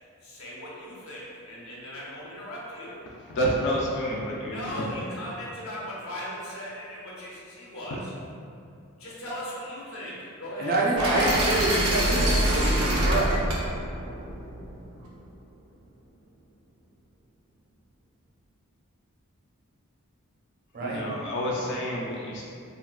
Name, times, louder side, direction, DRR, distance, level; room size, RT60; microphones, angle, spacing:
voice 1, 0.2-3.0 4.4-8.1 9.0-10.8, equal, 70° left, -6 dB, 0.7 m, -38 dB
voice 2, 3.3-4.8 20.8-22.4, equal, 50° left, -3 dB, 0.3 m, -29 dB
voice 3, 10.6-13.3 20.7-21.0, right 2 dB, 40° right, -2 dB, 0.4 m, -27 dB
sound 1, 11.0-15.0, right 1 dB, 85° right, 0.6 m, -25 dB
3.6 x 2.2 x 2.3 m, 2.4 s
head